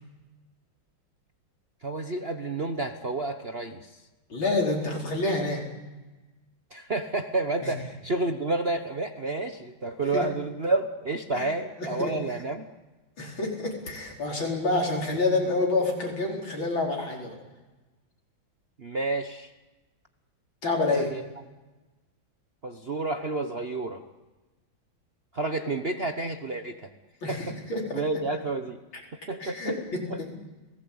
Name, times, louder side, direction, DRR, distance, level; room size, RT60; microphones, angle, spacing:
voice 1, 1.8-4.0 6.7-12.7 18.8-19.5 20.9-21.2 22.6-24.0 25.3-26.9 27.3-27.5 27.9-28.8 29.3-29.7 30.1-30.2, right 2 dB, 40° right, 7 dB, 1.1 m, -30 dB
voice 2, 4.3-5.7 7.6-7.7 10.1-10.2 11.3-11.5 11.8-12.1 13.2-17.4 20.6-21.1 27.2-28.0 29.4-30.3, left 2 dB, 70° left, 0 dB, 5.3 m, -28 dB
30.0 x 18.0 x 8.7 m, 1.2 s
omnidirectional pair, 2.2 m